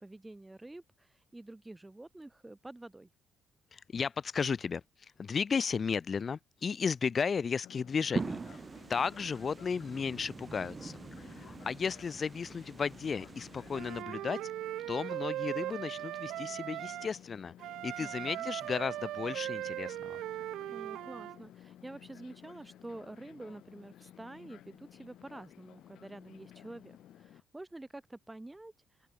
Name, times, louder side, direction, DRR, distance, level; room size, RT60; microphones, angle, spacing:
voice 1, 0.0-3.1 18.0-18.5 20.7-26.9 27.2-28.7, right 2 dB, 10° right, 1.8 m, -48 dB
voice 2, 3.7-8.6 8.9-14.5 14.9-20.2, left 6 dB, 40° left, 3.4 m, -34 dB
Fixed-wing aircraft airplane, 7.6-27.4, left 11 dB, 70° left, 4.4 m, -55 dB
sound 1, 8.2-14.0, right 4 dB, 30° right, 3.7 m, -43 dB
Wind instrument woodwind instrument, 13.7-17.1 17.6-21.4, right 14 dB, 85° right, 2.9 m, -39 dB
open air
cardioid pair, 105°, 0 cm